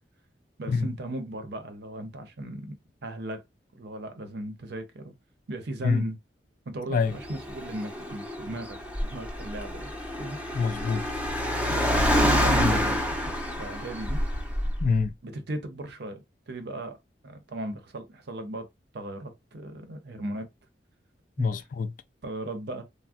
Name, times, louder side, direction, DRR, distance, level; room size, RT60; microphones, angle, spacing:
voice 1, 0.6-2.8 3.0-3.4 3.7-5.1 5.5-6.2 6.7-9.9 10.2-10.4 11.7-11.9 12.2-14.2 15.2-17.0 17.2-18.6 18.9-20.4 21.4-21.5 22.2-22.8, right 1 dB, 65° right, 0.6 m, -36 dB
Car, 7.1-15.0, equal, 10° right, 0.5 m, -27 dB
voice 2, 10.5-11.0 12.6-12.8 14.8-15.1 21.4-21.9, left 5 dB, 50° left, 0.3 m, -25 dB
3.5 x 2.0 x 2.4 m
head